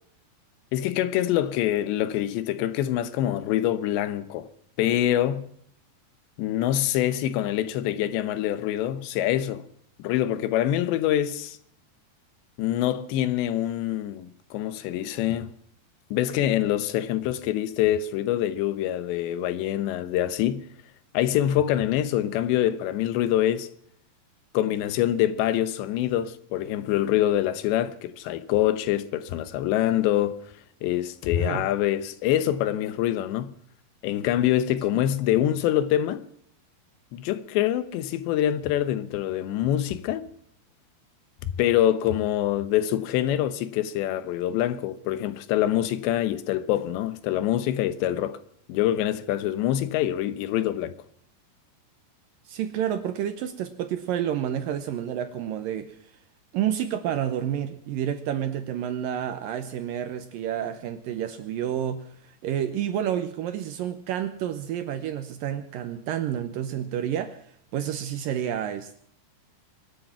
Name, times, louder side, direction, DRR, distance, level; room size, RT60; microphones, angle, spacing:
voice 1, 0.7-4.5 4.8-5.5 6.4-9.6 10.0-11.6 12.6-15.5 16.1-20.6 21.1-23.7 24.5-30.4 30.8-33.5 34.0-36.2 37.1-40.2 41.4-48.4 48.7-50.9, left 12 dB, 90° left, 3.3 m, -25 dB
voice 2, 31.4-31.7 52.5-56.0 56.5-67.4 67.7-69.0, right 10 dB, 75° right, 2.2 m, -29 dB
25.0 x 9.8 x 5.9 m
omnidirectional pair, 4.9 m